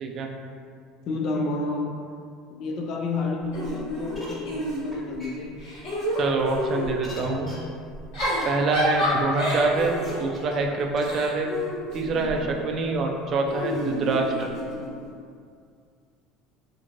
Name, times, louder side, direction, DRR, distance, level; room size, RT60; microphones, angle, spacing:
voice 1, 1.0-1.9 2.5-5.6, left 3 dB, 55° left, 2 dB, 0.4 m, -30 dB
Giggle / Chuckle chortle, 3.5-5.2 5.6-7.0 7.9-12.4 13.5-14.9, equal, 70° left, 1.4 m, -29 dB
sound 1, 4.1-4.3 4.9-5.0 5.2-5.3 6.1-6.2 7.0-7.5 8.4-8.5 8.9-9.1 10.0-10.4 11.0-11.1, left 1 dB, 10° left, 1.4 m, -42 dB
voice 2, 6.2-7.5 8.4-11.5 11.9-14.5, right 3 dB, 45° right, 2 dB, 0.3 m, -25 dB
2.9 x 2.5 x 2.5 m, 2.3 s
supercardioid pair, 100°, 0 cm